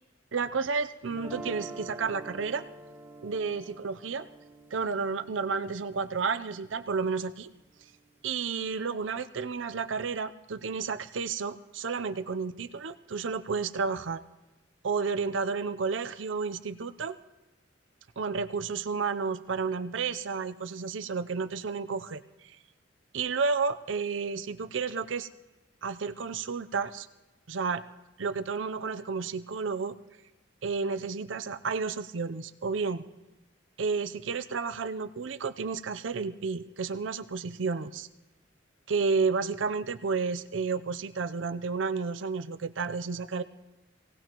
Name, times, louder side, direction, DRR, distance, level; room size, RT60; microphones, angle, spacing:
voice 1, 0.3-2.6 3.2-4.3 4.7-7.5 8.2-14.2 14.8-17.2 18.2-22.2 23.1-25.3 25.8-27.1 27.5-27.8 28.2-30.0 30.6-33.0 33.8-38.1 38.9-43.4, right 5 dB, 80° right, 11 dB, 0.6 m, -31 dB
sound 1, 1.1-7.2, right 2 dB, 10° right, 1.4 m, -46 dB
26.0 x 18.0 x 3.0 m, 1.1 s
head